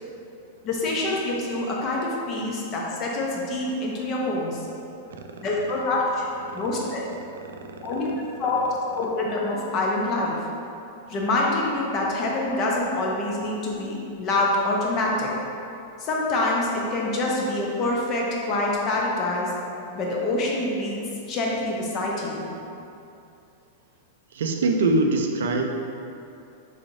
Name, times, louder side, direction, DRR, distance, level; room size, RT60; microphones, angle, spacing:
voice 1, 0.6-4.6 5.4-6.3 6.5-7.0 7.8-8.1 8.4-8.6 8.9-10.4 11.1-15.3 16.0-19.5 19.9-21.0 21.3-22.4, left 2 dB, 30° left, -2 dB, 0.6 m, -26 dB
voice 2, 24.3-25.6, right 2 dB, 85° right, 3 dB, 0.4 m, -22 dB
3.8 x 3.2 x 2.6 m, 2.7 s
supercardioid pair, 155°, 0 cm